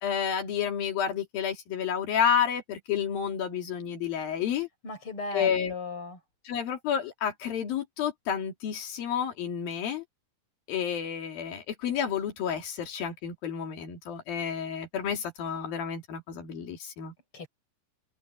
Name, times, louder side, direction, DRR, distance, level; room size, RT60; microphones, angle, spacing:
voice 1, 0.0-4.7 5.3-5.7 6.5-10.0 10.7-17.1, left 8 dB, 85° left, 4.3 m, -30 dB
voice 2, 4.8-6.2 17.3-17.5, left 3 dB, 35° left, 6.6 m, -37 dB
omnidirectional pair, 4.0 m